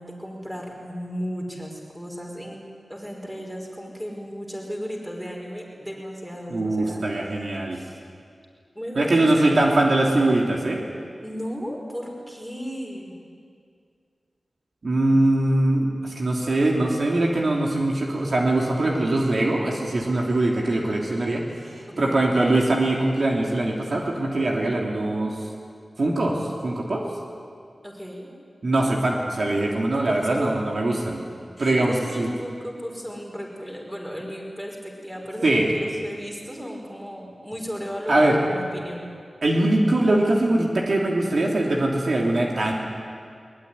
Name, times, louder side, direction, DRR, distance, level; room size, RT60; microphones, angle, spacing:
voice 1, 0.0-8.0 8.7-9.5 11.2-13.2 21.9-22.3 27.8-28.3 29.8-30.6 31.6-39.1, equal, 5° right, 0 dB, 5.0 m, -35 dB
voice 2, 6.5-7.8 8.9-10.8 14.8-25.4 26.0-27.0 28.6-31.2 31.6-32.3 35.4-35.7 38.1-38.4 39.4-42.7, right 2 dB, 55° right, -1 dB, 3.1 m, -22 dB
22.5 x 20.5 x 9.9 m, 2.3 s
wide cardioid pair, 110°, 0 cm